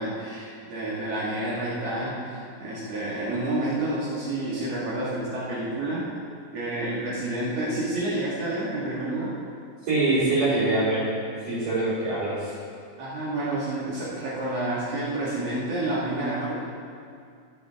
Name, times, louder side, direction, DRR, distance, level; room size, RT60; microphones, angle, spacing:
voice 1, 0.0-6.1 6.5-9.3 13.0-16.5, right 1 dB, 90° right, -8 dB, 1.4 m, -29 dB
voice 2, 9.9-11.1 11.5-12.5, right 2 dB, 45° right, -12 dB, 3.9 m, -24 dB
14.5 x 8.7 x 3.6 m, 2.3 s
omnidirectional pair, 5.9 m